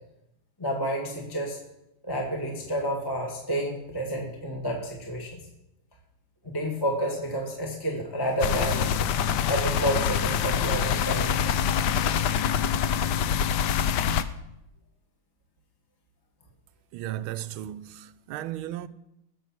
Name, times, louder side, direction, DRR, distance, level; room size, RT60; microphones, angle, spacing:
voice 1, 0.6-1.6 2.0-5.4 6.4-9.0 9.5-11.6, equal, 15° left, 1.3 m, -30 dB
sound 1, 8.4-14.2, left 8 dB, 70° left, 1.1 m, -25 dB
voice 2, 16.9-18.9, right 13 dB, 85° right, 1.5 m, -35 dB
17.0 x 6.7 x 5.9 m
omnidirectional pair, 2.3 m